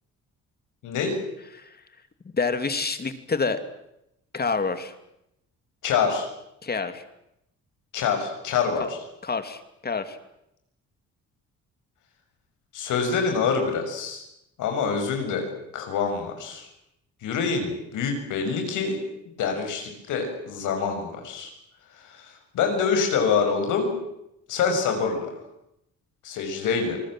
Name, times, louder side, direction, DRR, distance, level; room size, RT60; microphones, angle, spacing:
voice 1, 0.8-1.2 5.8-6.3 7.9-9.0 12.7-14.2 14.6-16.7 17.2-19.0 19.4-21.5 22.0-24.0 24.5-25.3 26.2-27.0, left 5 dB, 85° left, 4 dB, 6.6 m, -26 dB
voice 2, 2.3-3.6 4.3-4.9 6.6-7.0 9.2-10.2, left 4 dB, 30° left, 9 dB, 2.8 m, -27 dB
28.0 x 21.0 x 7.6 m, 0.82 s
cardioid pair, 90°, 30 cm